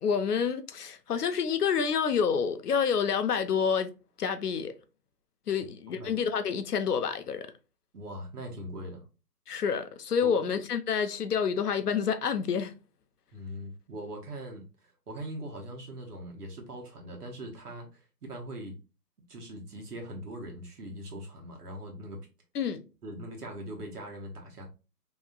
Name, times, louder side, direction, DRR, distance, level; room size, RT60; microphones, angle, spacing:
voice 1, 0.0-3.9 4.2-4.7 5.5-7.4 9.5-12.7 22.5-22.8, left 6 dB, 70° left, 0.6 m, -28 dB
voice 2, 5.6-6.1 7.9-9.0 10.2-10.3 13.3-17.9 18.2-18.8 19.3-22.2 23.0-24.7, right 1 dB, 65° right, 1.2 m, -41 dB
2.9 x 2.7 x 2.4 m
hypercardioid pair, 180°, 49 cm